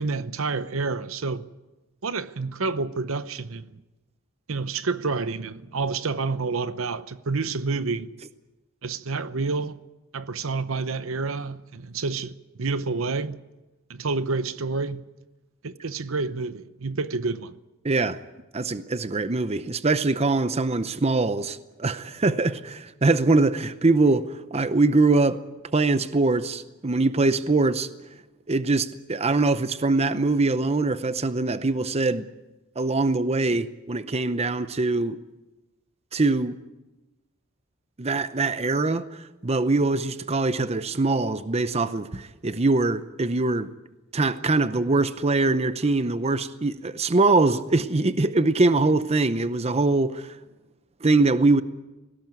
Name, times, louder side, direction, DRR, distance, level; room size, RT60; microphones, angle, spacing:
voice 1, 0.0-1.4 2.0-3.7 4.5-8.1 8.8-9.8 10.1-13.4 13.9-15.0 15.6-17.5, right 4 dB, 70° right, 0.8 m, -29 dB
voice 2, 17.8-18.2 18.5-25.4 25.7-27.9 28.5-32.2 32.8-35.2 36.1-36.6 38.0-43.7 44.1-50.3 51.0-51.6, right 3 dB, 30° right, 0.7 m, -23 dB
19.5 x 17.0 x 9.3 m
head